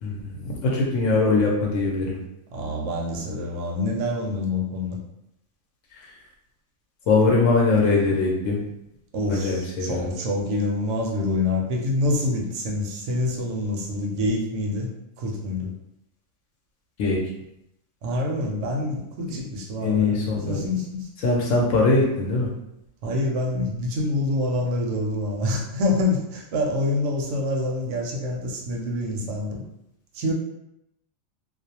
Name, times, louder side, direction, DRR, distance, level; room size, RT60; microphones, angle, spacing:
voice 1, 0.0-2.2 5.9-6.1 7.1-8.6 9.3-10.1 17.0-17.2 19.3-19.4 19.8-20.7 21.2-22.5, left 3 dB, 75° left, -2 dB, 0.9 m, -22 dB
voice 2, 2.5-5.0 9.1-14.9 15.2-15.7 18.0-20.2 20.4-21.1 23.0-29.6 30.1-30.3, left 2 dB, 70° right, 0 dB, 0.9 m, -26 dB
2.5 x 2.0 x 2.7 m, 0.83 s
omnidirectional pair, 1.4 m